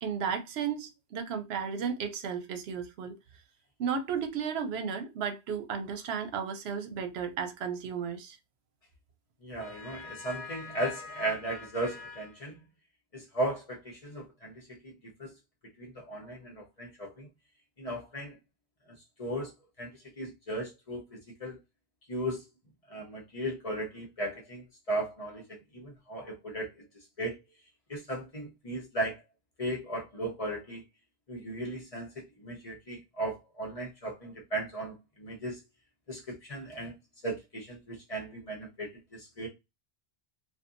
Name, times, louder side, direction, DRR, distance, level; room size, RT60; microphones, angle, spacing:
voice 1, 0.0-3.2 3.8-8.4, right 7 dB, 80° right, 0.9 m, -34 dB
voice 2, 9.4-12.5 13.1-14.9 15.2-15.3 15.8-17.3 17.8-18.4 19.2-19.5 19.8-19.9 20.2-21.6 22.1-22.4 22.9-26.8 27.2-27.4 27.9-29.2 29.6-30.8 31.3-32.1 32.4-35.6 36.1-36.9 37.2-39.5, right 1 dB, 40° left, 0.8 m, -36 dB
2.7 x 2.3 x 2.4 m
omnidirectional pair, 1.1 m